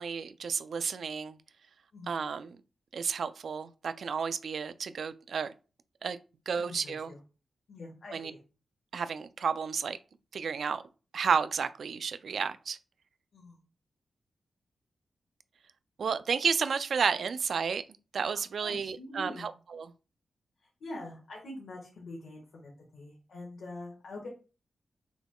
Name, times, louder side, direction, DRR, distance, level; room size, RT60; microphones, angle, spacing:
voice 1, 0.0-1.4 2.1-2.6 2.9-5.5 6.0-6.2 6.5-7.1 8.1-8.3 8.9-10.0 10.3-10.8 11.1-12.8 16.0-17.8 18.1-19.9, right 6 dB, 65° right, 0.4 m, -32 dB
voice 2, 6.6-7.2 7.7-8.4 13.3-13.6 18.6-19.5 20.8-24.3, left 2 dB, 75° left, 1.6 m, -44 dB
6.0 x 3.5 x 2.3 m
wide cardioid pair, 110°, 0 cm